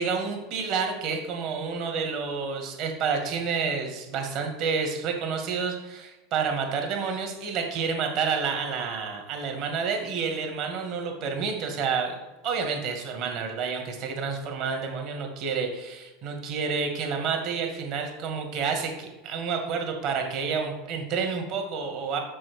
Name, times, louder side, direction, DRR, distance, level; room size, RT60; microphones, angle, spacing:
voice 1, 0.0-12.2 12.4-22.2, right 5 dB, 55° right, 3 dB, 2.1 m, -29 dB
6.2 x 5.9 x 6.5 m, 1.1 s
supercardioid pair, 115°, 0 cm